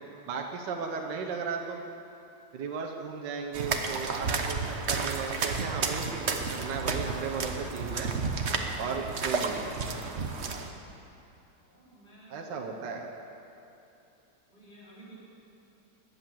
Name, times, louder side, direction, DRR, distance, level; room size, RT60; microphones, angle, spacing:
voice 1, 0.3-1.8 2.5-8.1 8.8-9.6 12.3-13.1, right 5 dB, 70° right, 2 dB, 1.6 m, -35 dB
sound 1, 3.5-10.7, right 4 dB, 45° right, 1.1 m, -32 dB
voice 2, 11.6-12.8 14.5-15.2, right 1 dB, 25° left, -10 dB, 5.1 m, -53 dB
21.0 x 8.5 x 7.6 m, 3.0 s
omnidirectional pair, 2.0 m